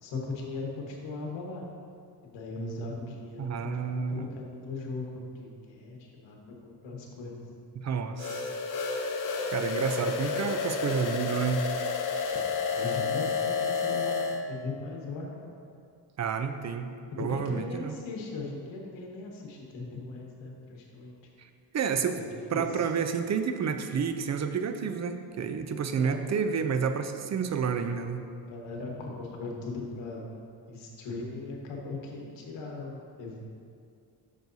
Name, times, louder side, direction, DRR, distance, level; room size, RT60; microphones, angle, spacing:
voice 1, 0.0-1.6 2.3-7.5 12.5-14.2 14.5-15.5 17.1-21.1 22.1-22.9 26.0-26.2 28.4-30.3 30.7-33.4, left 3 dB, 80° left, -1 dB, 1.4 m, -39 dB
voice 2, 3.4-4.3 7.8-8.5 9.5-11.7 16.2-16.9 17.2-18.0 21.7-22.2 22.5-28.3, right 6 dB, 40° right, 8 dB, 0.5 m, -30 dB
sound 1, 8.2-14.4, left 5 dB, 45° left, 0.7 m, -30 dB
8.9 x 6.5 x 2.7 m, 2.3 s
cardioid pair, 95°, 44 cm